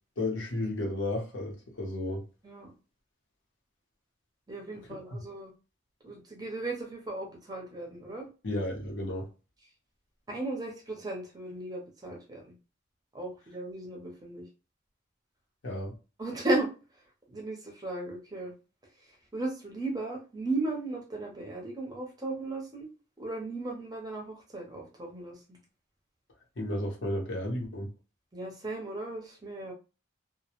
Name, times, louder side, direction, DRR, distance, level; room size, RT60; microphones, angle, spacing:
voice 1, 0.2-2.3 5.1-5.2 8.4-9.3 15.6-15.9 26.6-27.9, left 1 dB, 75° left, 0.8 m, -33 dB
voice 2, 4.5-5.5 6.0-8.3 10.3-12.4 13.1-14.5 16.2-16.7 17.3-18.5 19.3-22.9 23.2-25.4 28.3-29.7, right 2 dB, 20° right, 0.6 m, -35 dB
2.2 x 2.1 x 2.8 m
head